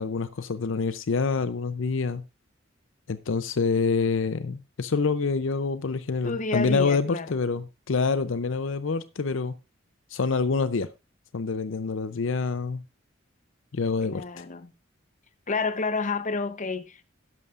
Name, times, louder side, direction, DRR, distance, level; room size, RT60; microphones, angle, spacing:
voice 1, 0.0-2.2 3.1-9.5 10.1-10.9 11.3-12.8 13.7-14.4, left 4 dB, 70° left, 0.6 m, -26 dB
voice 2, 6.2-7.3 14.0-14.7 15.5-17.0, left 4 dB, 40° left, 0.8 m, -29 dB
12.5 x 11.0 x 2.5 m
head